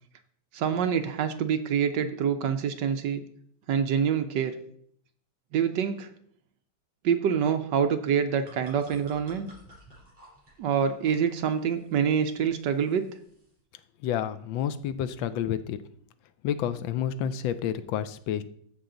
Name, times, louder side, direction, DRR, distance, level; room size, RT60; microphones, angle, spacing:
voice 1, 0.5-3.2 3.7-4.5 5.5-6.1 7.0-9.5 10.6-13.1, right 7 dB, 70° right, 8 dB, 1.2 m, -26 dB
sound 1, 8.1-13.6, right 1 dB, 25° right, 5.4 m, -54 dB
voice 2, 14.0-15.8 16.4-18.4, left 9 dB, 75° left, 13 dB, 1.3 m, -29 dB
14.5 x 5.7 x 3.8 m, 0.64 s
omnidirectional pair, 2.2 m